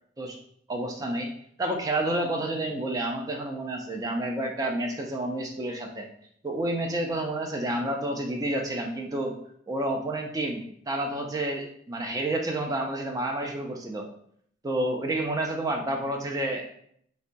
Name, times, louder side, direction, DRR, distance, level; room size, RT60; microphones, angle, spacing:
voice 1, 0.7-1.3 1.6-6.1 6.4-9.4 9.7-14.1 14.6-16.7, right 1 dB, 15° right, 2 dB, 0.3 m, -29 dB
3.7 x 2.2 x 2.5 m, 0.67 s
head